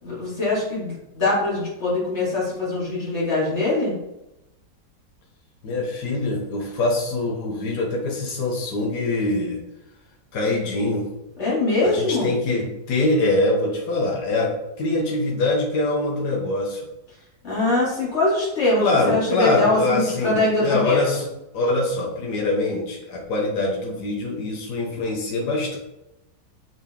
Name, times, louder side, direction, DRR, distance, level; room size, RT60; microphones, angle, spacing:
voice 1, 0.0-4.0 11.4-12.3 17.4-21.0, left 2 dB, 40° left, -7 dB, 2.7 m, -22 dB
voice 2, 5.6-9.6 10.3-11.1 11.8-16.9 18.8-21.3 21.5-25.8, left 2 dB, 65° left, -2 dB, 1.8 m, -24 dB
7.1 x 4.0 x 3.5 m, 0.92 s
omnidirectional pair, 1.9 m